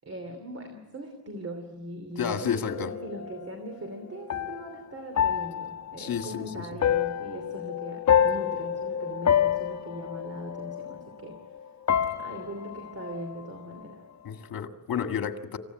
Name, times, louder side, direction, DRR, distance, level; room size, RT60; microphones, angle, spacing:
voice 1, 0.0-11.4 12.2-14.0, right 1 dB, 40° right, 3.0 m, -40 dB
voice 2, 2.2-2.9 6.0-6.7 14.2-15.6, left 7 dB, 65° left, 1.9 m, -31 dB
sound 1, 2.7-11.6 11.9-13.9, left 9 dB, 50° left, 1.2 m, -28 dB
27.5 x 16.0 x 9.3 m
wide cardioid pair, 145°, 37 cm